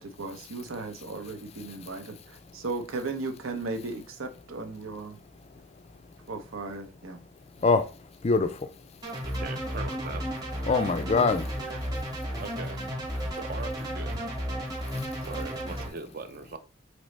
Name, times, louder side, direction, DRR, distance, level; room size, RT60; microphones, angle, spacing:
voice 1, 0.0-5.2 6.3-7.2, right 3 dB, 80° right, 0.7 m, -36 dB
voice 2, 7.6-8.7 10.7-11.4 14.9-15.1, left 4 dB, 30° left, 0.3 m, -24 dB
sound 1, 9.0-15.9, equal, 20° right, 1.0 m, -33 dB
voice 3, 9.2-10.2 10.6-11.8 12.4-12.8 13.3-14.2 15.3-16.6, right 4 dB, 45° right, 0.5 m, -40 dB
5.2 x 2.9 x 3.2 m
head